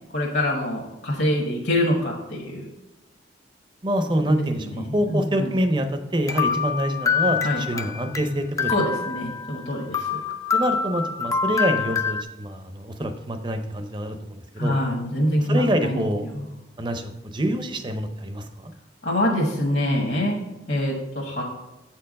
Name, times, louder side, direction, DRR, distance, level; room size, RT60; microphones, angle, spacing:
voice 1, 0.1-2.7 4.3-5.5 7.4-7.9 8.7-10.2 14.6-16.5 19.0-20.4 20.7-21.4, left 1 dB, 60° left, -2 dB, 1.2 m, -25 dB
voice 2, 3.8-8.7 10.5-14.8 15.5-16.3 16.8-18.7, equal, 25° right, 8 dB, 0.6 m, -26 dB
sound 1, 6.3-8.3 8.6-9.6 9.9-12.2, left 6 dB, 15° left, 0.3 m, -25 dB
8.0 x 4.5 x 5.2 m, 1.0 s
head